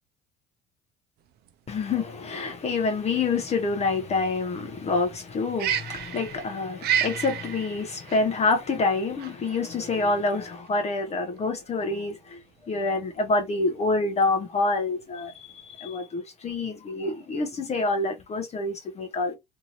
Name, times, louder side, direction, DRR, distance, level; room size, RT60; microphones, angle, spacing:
sound 1, 1.2-15.8, right 9 dB, 55° right, 0.6 m, -34 dB
voice 1, 1.7-19.4, left 3 dB, 35° left, 0.6 m, -27 dB
2.7 x 2.7 x 2.7 m
hypercardioid pair, 75°, 19 cm